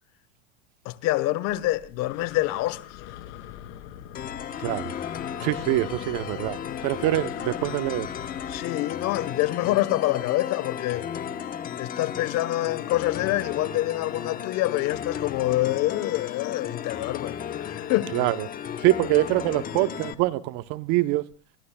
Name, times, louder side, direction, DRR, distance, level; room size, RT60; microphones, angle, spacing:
voice 1, 0.8-2.8 5.4-5.5 8.5-11.0 11.8-18.1, left 16 dB, 45° left, 1.0 m, -26 dB
Breathing, 1.5-8.6, left 12 dB, 60° left, 2.8 m, -43 dB
sound 1, 4.1-20.1, left 9 dB, 25° left, 1.0 m, -34 dB
voice 2, 5.4-8.1 18.1-18.5 18.8-21.2, right 17 dB, 45° right, 0.8 m, -24 dB
27.5 x 21.5 x 2.3 m
supercardioid pair, 140°, 37 cm